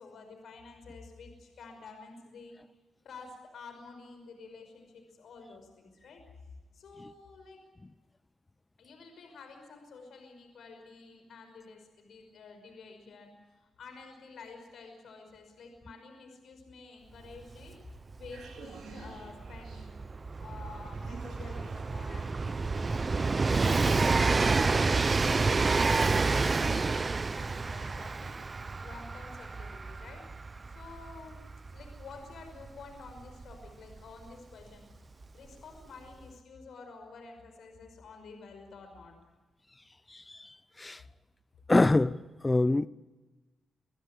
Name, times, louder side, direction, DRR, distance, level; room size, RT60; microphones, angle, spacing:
voice 1, 0.0-2.6 3.0-7.7 8.8-17.8 18.2-20.0 20.4-23.4 23.9-28.4 28.8-30.3 30.7-31.4 31.7-34.9 35.3-39.2, left 4 dB, 75° left, 5.7 m, -50 dB
Train, 17.3-17.4 17.6-34.2 35.2-35.3, right 4 dB, 35° right, 0.9 m, -29 dB
sound 1, 17.9-26.8, right 5 dB, 75° right, 4.5 m, -53 dB
voice 2, 40.1-40.5 40.8-41.0 41.7-42.9, left 2 dB, 20° left, 0.8 m, -25 dB
26.5 x 16.0 x 9.9 m
cardioid pair, 75°, 0 cm